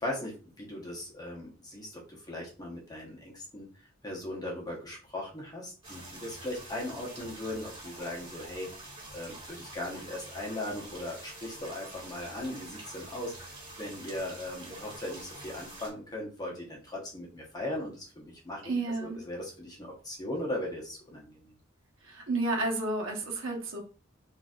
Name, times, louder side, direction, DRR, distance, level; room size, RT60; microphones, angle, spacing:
voice 1, 0.0-2.0 2.3-3.7 4.0-8.7 9.1-13.5 13.8-21.4, left 1 dB, 20° left, -2 dB, 1.0 m, -38 dB
sound 1, 5.8-15.9, right 1 dB, 30° right, 1.7 m, -46 dB
voice 2, 18.6-19.2 22.0-23.8, right 2 dB, 70° right, 0 dB, 1.0 m, -31 dB
3.9 x 2.7 x 2.4 m, 0.36 s
head